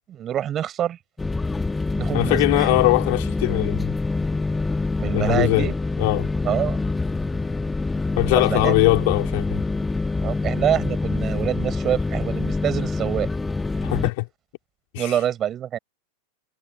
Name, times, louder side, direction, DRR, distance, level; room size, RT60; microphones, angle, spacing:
voice 1, 0.1-1.0 1.9-2.8 5.0-5.7 6.4-6.8 8.3-9.0 10.2-13.3 15.0-15.8, right 10 dB, 30° right, 7.8 m, -26 dB
sound 1, 1.2-14.1, left 3 dB, 10° left, 2.0 m, -25 dB
voice 2, 2.1-4.0 5.1-5.7 6.0-6.3 8.2-9.6 13.8-14.3 14.9-15.1, left 26 dB, 50° left, 3.7 m, -21 dB
figure-of-eight pair, 90°, 0 cm